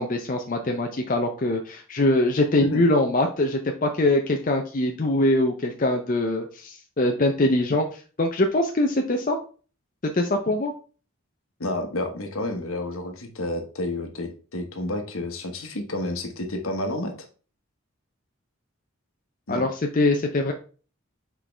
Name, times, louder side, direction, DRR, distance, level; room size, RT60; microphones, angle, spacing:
voice 1, 0.0-9.4 10.1-10.7 19.5-20.5, left 1 dB, 40° left, 3 dB, 0.6 m, -23 dB
voice 2, 11.6-17.3 19.5-19.7, left 1 dB, 75° left, 5 dB, 1.1 m, -30 dB
6.2 x 4.6 x 3.4 m, 0.38 s
head